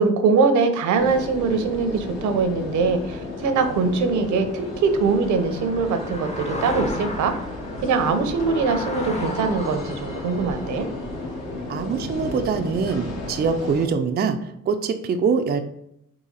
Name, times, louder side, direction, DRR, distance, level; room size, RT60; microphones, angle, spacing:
voice 1, 0.0-7.5 7.8-10.9, right 4 dB, 75° right, 8 dB, 0.7 m, -22 dB
sound 1, 0.9-13.9, left 2 dB, 60° left, 1.2 m, -34 dB
sound 2, 2.8-12.9, left 2 dB, 20° left, 0.7 m, -36 dB
voice 2, 11.7-15.6, right 5 dB, 35° right, 6 dB, 0.4 m, -24 dB
4.1 x 2.8 x 3.8 m, 0.75 s
cardioid pair, 90°, 30 cm